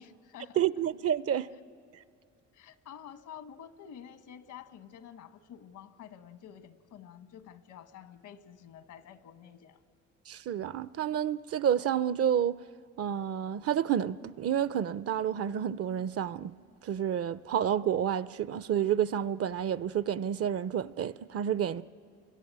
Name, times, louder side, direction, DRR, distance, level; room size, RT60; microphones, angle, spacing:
voice 1, 0.0-0.6 2.5-9.8, left 9 dB, 80° left, 1.3 m, -49 dB
voice 2, 0.6-1.5 10.3-12.6 13.0-16.5 16.8-21.8, right 9 dB, 50° right, 0.6 m, -29 dB
29.0 x 22.5 x 8.8 m
cardioid pair, 90°, 30 cm